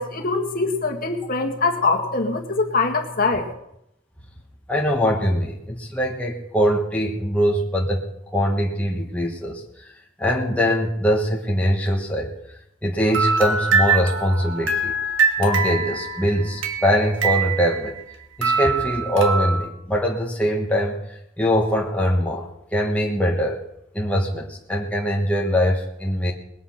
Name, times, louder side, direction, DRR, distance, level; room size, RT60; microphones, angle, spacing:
voice 1, 0.0-3.5, left 3 dB, 45° left, 2 dB, 1.8 m, -23 dB
voice 2, 4.7-8.0 8.3-9.6 10.2-12.3 12.8-14.9 15.4-18.0 18.4-20.9 21.4-23.6 23.9-26.3, equal, 5° left, -1 dB, 1.4 m, -22 dB
sound 1, 13.1-18.1 18.4-19.7, right 4 dB, 70° right, 1.9 m, -23 dB
20.5 x 8.5 x 5.8 m, 0.79 s
head